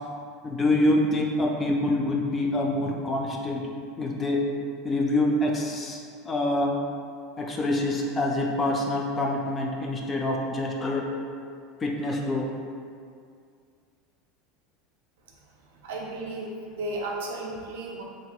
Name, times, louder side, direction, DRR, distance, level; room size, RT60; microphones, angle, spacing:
voice 1, 0.4-3.6 4.0-4.4 4.8-6.0 6.3-6.7 7.4-11.0 11.8-12.5, left 1 dB, 25° left, 0 dB, 0.3 m, -26 dB
voice 2, 15.8-18.0, right 2 dB, 65° right, -2 dB, 0.4 m, -34 dB
2.6 x 2.2 x 2.3 m, 2.3 s
figure-of-eight pair, 75°, 0 cm